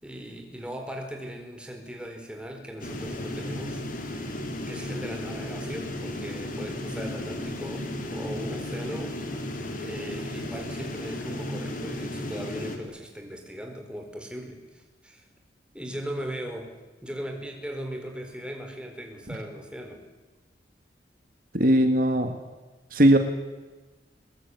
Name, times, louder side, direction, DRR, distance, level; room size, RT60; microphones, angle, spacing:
voice 1, 0.0-3.8 4.7-9.2 9.8-15.3 15.7-16.7 17.0-20.0, equal, 5° right, 3 dB, 4.4 m, -38 dB
sound 1, 2.8-12.8, left 1 dB, 45° left, 3.7 m, -34 dB
voice 2, 21.5-22.3 22.9-23.2, right 1 dB, 50° right, 6 dB, 2.1 m, -19 dB
22.5 x 21.5 x 9.7 m, 1.2 s
head